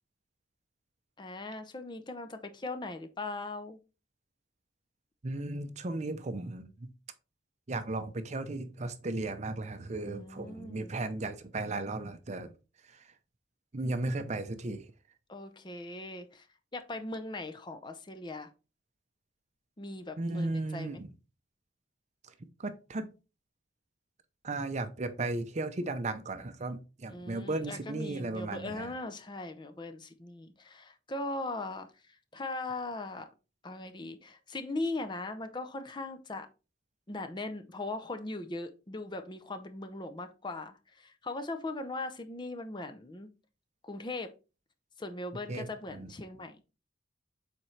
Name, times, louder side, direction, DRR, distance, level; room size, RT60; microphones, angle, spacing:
voice 1, 1.2-3.8 10.0-10.9 15.3-16.5 16.7-18.5 19.8-21.0 27.1-33.3 33.6-36.5 37.1-43.3 43.8-44.3 45.0-46.6, left 2 dB, 25° left, 0.5 m, -39 dB
voice 2, 5.2-6.9 7.7-12.5 12.9-13.0 13.7-14.8 20.2-21.1 22.6-23.1 24.4-28.9 45.5-46.1, right 2 dB, 35° right, 0.6 m, -35 dB
7.2 x 4.3 x 3.2 m
head